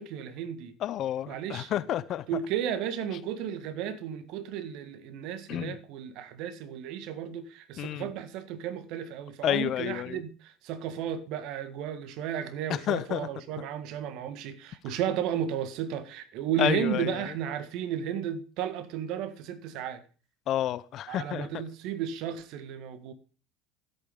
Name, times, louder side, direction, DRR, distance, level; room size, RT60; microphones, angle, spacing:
voice 1, 0.0-0.7 1.3-1.8 2.3-20.0 21.1-23.1, right 9 dB, 55° right, 1.7 m, -34 dB
voice 2, 0.8-2.2 5.5-5.8 7.8-8.1 9.4-10.2 12.9-13.3 16.6-17.2 20.5-21.5, left 12 dB, 50° left, 0.9 m, -30 dB
14.0 x 8.4 x 5.3 m
figure-of-eight pair, 65°, 0 cm